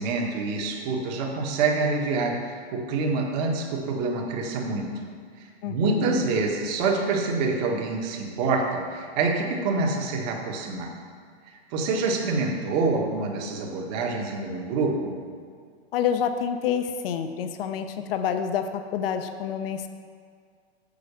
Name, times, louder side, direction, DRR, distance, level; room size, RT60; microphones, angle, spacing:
voice 1, 0.0-2.4 2.7-5.0 5.7-10.9 11.7-15.1, right 3 dB, 40° right, 1 dB, 1.3 m, -26 dB
voice 2, 5.6-6.2 15.9-19.9, left 8 dB, 60° left, 8 dB, 0.7 m, -28 dB
6.8 x 6.2 x 6.7 m, 2.1 s
hypercardioid pair, 150°, 33 cm